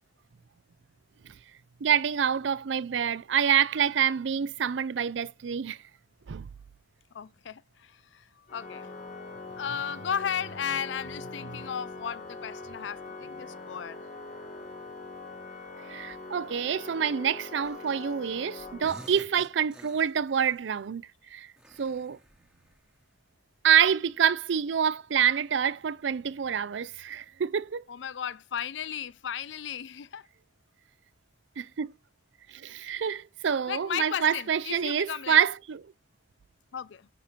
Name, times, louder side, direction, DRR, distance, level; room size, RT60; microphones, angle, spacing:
voice 1, 1.8-5.8 6.3-6.5 15.9-21.5 21.8-22.2 23.6-27.8 31.6-31.9 32.5-35.8, right 8 dB, 80° right, 0.4 m, -27 dB
voice 2, 7.1-8.9 9.6-14.0 27.9-30.3 33.7-35.4 36.7-37.1, left 8 dB, 80° left, 0.5 m, -35 dB
Organ, 8.5-19.4, left 3 dB, 45° left, 1.4 m, -43 dB
sound 1, 17.6-18.3 18.6-20.6 21.6-23.1, equal, 5° right, 1.2 m, -52 dB
9.3 x 5.2 x 4.3 m
head